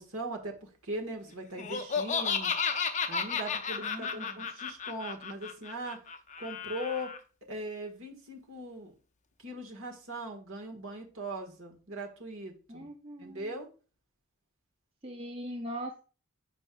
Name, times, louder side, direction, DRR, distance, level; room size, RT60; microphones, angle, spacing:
voice 1, 0.0-2.5 3.1-6.0 6.4-7.1 7.5-8.9 9.4-12.9 13.2-13.7, right 1 dB, 70° right, 2 dB, 1.6 m, -40 dB
Laughter, 1.6-7.2, left 6 dB, 35° left, 0.5 m, -33 dB
voice 2, 3.8-4.5 12.7-13.6 15.0-16.0, equal, 25° right, 4 dB, 0.5 m, -41 dB
8.2 x 5.3 x 2.3 m, 0.36 s
head